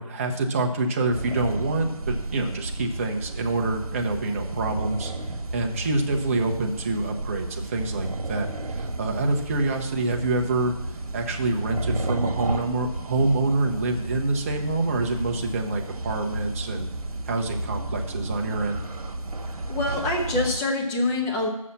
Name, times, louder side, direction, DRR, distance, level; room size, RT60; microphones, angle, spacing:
voice 1, 0.0-5.1 5.5-10.7 11.1-16.9 17.3-18.8, right 2 dB, 25° right, 2 dB, 0.9 m, -26 dB
sound 1, 1.1-20.6, right 2 dB, 75° right, 1.4 m, -32 dB
voice 2, 19.7-21.5, left 2 dB, 5° left, -1 dB, 0.6 m, -25 dB
7.3 x 5.6 x 7.1 m, 0.95 s
figure-of-eight pair, 160°, 19 cm